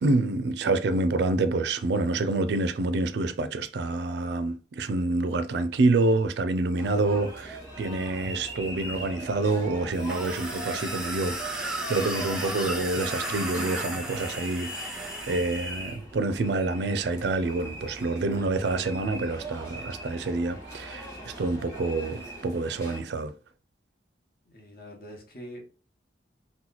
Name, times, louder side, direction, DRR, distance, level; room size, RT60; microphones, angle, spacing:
voice 1, 0.0-23.3, right 2 dB, 70° right, 0.4 m, -27 dB
sound 1, 6.8-23.0, right 1 dB, 15° left, 1.0 m, -41 dB
sound 2, 9.9-15.9, right 1 dB, 5° right, 0.4 m, -35 dB
voice 2, 24.5-25.6, equal, 50° left, 1.0 m, -44 dB
2.9 x 2.2 x 3.8 m
head